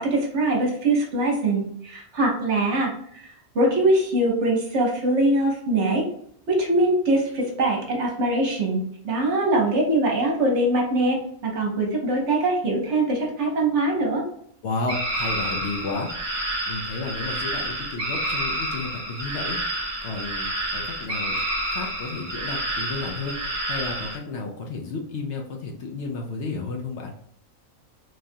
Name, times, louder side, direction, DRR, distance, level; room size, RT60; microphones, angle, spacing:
voice 1, 0.0-6.1 6.5-14.2, right 2 dB, 60° right, -1 dB, 1.1 m, -23 dB
voice 2, 14.6-16.1 16.7-21.4 21.7-23.4 23.6-27.1, left 3 dB, 65° left, 1 dB, 0.8 m, -32 dB
sound 1, 14.9-24.2, right 1 dB, 35° right, 0.8 m, -29 dB
3.1 x 2.4 x 2.6 m, 0.68 s
omnidirectional pair, 1.4 m